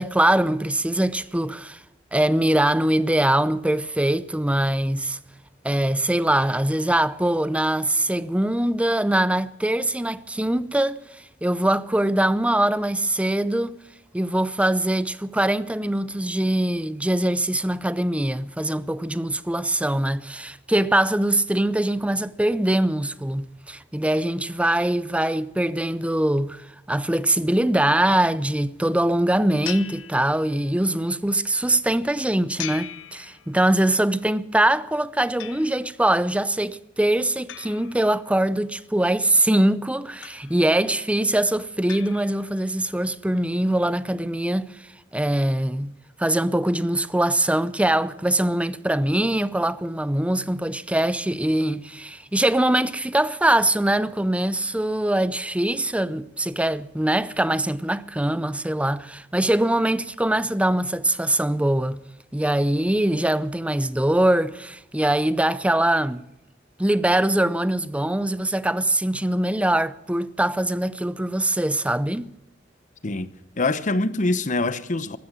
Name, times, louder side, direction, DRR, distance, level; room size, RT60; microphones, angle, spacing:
voice 1, 0.0-1.8 2.1-5.2 5.6-11.0 11.4-13.8 14.1-26.6 26.9-44.7 45.1-62.0 62.3-66.3 66.8-72.3, right 1 dB, 5° right, 0.5 m, -22 dB
sound 1, 29.6-30.9 32.6-33.9 35.4-36.1 37.5-38.6 40.2-40.9 41.9-42.8, left 11 dB, 80° left, 0.8 m, -40 dB
voice 2, 73.0-75.2, left 2 dB, 40° left, 0.9 m, -25 dB
15.5 x 12.5 x 7.3 m
head